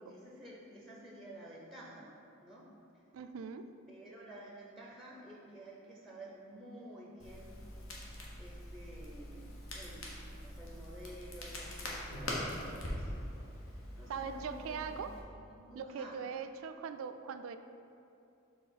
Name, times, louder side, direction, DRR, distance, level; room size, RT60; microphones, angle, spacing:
voice 1, 0.0-2.1 2.4-2.7 3.9-7.6 8.4-10.1 10.4-13.1 14.0-16.1, right 1 dB, ahead, -3 dB, 0.5 m, -51 dB
voice 2, 3.1-3.7 14.1-15.2 15.7-17.6, right 6 dB, 80° right, 10 dB, 0.3 m, -41 dB
Crackle, 7.2-15.2, left 1 dB, 80° left, 1.0 m, -43 dB
4.7 x 3.8 x 5.5 m, 2.7 s
head